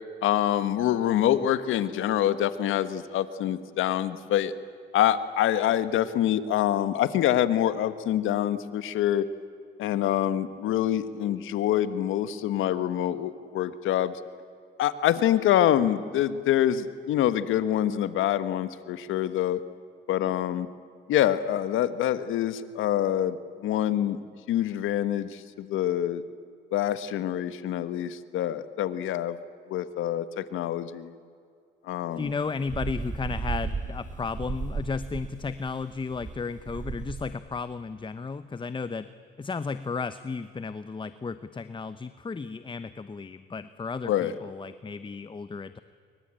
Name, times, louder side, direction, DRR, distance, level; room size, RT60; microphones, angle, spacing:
voice 1, 0.2-4.5 4.9-9.2 9.8-14.1 14.8-19.6 20.1-20.7 21.1-23.4 23.6-24.2 24.5-26.2 26.7-29.4 29.7-31.1 31.9-32.3 44.1-44.3, left 11 dB, 85° left, 13 dB, 1.5 m, -26 dB
voice 2, 32.2-39.1 39.4-45.8, left 4 dB, 25° left, 13 dB, 0.9 m, -34 dB
sound 1, 32.2-37.3, right 4 dB, 40° right, 2.6 m, -35 dB
26.0 x 24.0 x 9.0 m, 2.3 s
cardioid pair, 90°, 20 cm